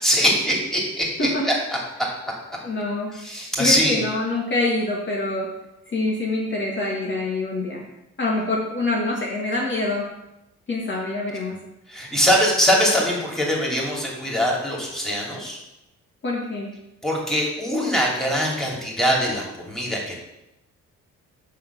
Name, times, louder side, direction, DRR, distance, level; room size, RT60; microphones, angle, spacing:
voice 1, 0.0-1.3 3.2-4.0 11.9-15.6 17.0-20.1, equal, ahead, -3 dB, 2.8 m, -22 dB
voice 2, 2.6-3.2 3.6-5.5 5.9-7.8 8.2-10.0 10.7-11.5 16.2-16.7, left 2 dB, 40° left, -2 dB, 1.9 m, -25 dB
8.6 x 3.8 x 6.9 m, 0.90 s
cardioid pair, 90°, 30 cm